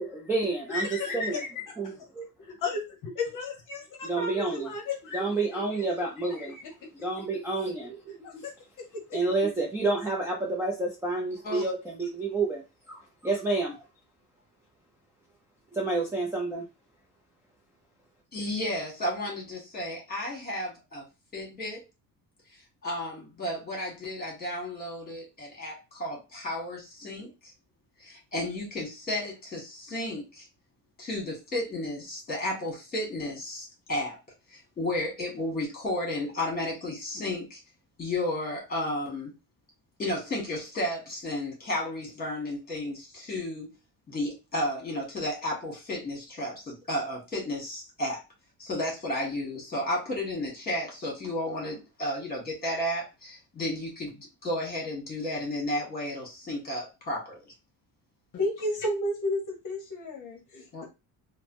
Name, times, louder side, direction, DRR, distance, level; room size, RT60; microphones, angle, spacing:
voice 1, 0.0-0.9 1.1-1.4 1.8-2.2 4.0-4.7 5.1-6.5 7.0-8.4 9.1-12.6 12.9-13.8 15.7-16.6, right 3 dB, 5° right, -5 dB, 0.4 m, -29 dB
voice 2, 0.7-1.9 2.6-5.8 6.3-6.9 8.2-9.2 58.3-60.8, left 2 dB, 55° left, 1 dB, 0.8 m, -33 dB
voice 3, 18.3-21.0 21.3-21.8 22.8-27.5 28.0-30.5 31.0-34.2 34.5-37.6 38.0-39.3 40.0-43.7 44.1-48.2 48.6-57.4 60.7-60.9, left 1 dB, 25° left, -2 dB, 1.5 m, -33 dB
3.3 x 2.0 x 3.0 m, 0.26 s
cardioid pair, 170°, 39 cm